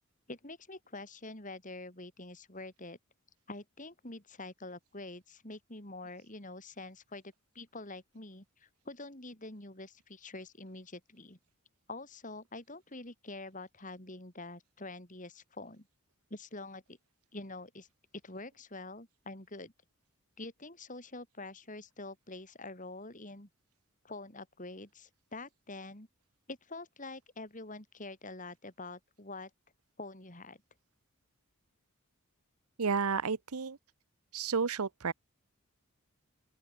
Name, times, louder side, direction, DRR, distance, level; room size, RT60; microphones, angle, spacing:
voice 1, 0.3-3.0 3.5-7.2 7.5-11.4 11.9-15.9 16.3-17.0 17.3-17.9 18.2-19.7 20.4-23.5 24.0-26.1 26.5-29.5 30.0-30.6, left 2 dB, 35° left, 4.4 m, -46 dB
voice 2, 32.8-33.8 34.3-35.1, right 5 dB, 80° right, 0.9 m, -31 dB
open air
head